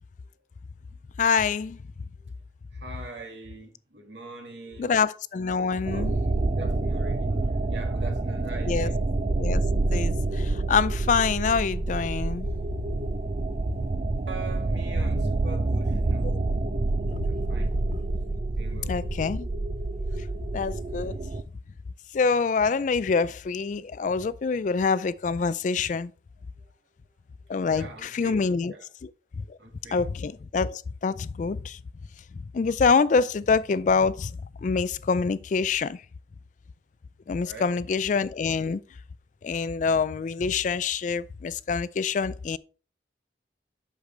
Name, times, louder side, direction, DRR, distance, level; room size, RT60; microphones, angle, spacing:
voice 1, 1.2-1.8 4.8-6.2 8.7-8.9 9.4-9.6 9.9-12.5 16.2-16.4 18.9-19.5 20.5-21.1 22.1-26.1 27.5-28.7 29.0-29.1 29.9-31.8 32.5-34.3 34.6-36.0 37.3-38.8 39.4-42.6, left 5 dB, 40° left, 0.3 m, -25 dB
voice 2, 2.7-5.0 5.9-6.1 6.5-9.0 14.3-16.3 17.2-17.7 18.5-19.0 20.0-20.2 27.7-28.9 29.6-30.0 37.4-37.8, right 2 dB, 75° right, 2.1 m, -43 dB
sound 1, 5.8-21.4, right 2 dB, 35° right, 0.4 m, -27 dB
8.0 x 6.6 x 3.3 m
head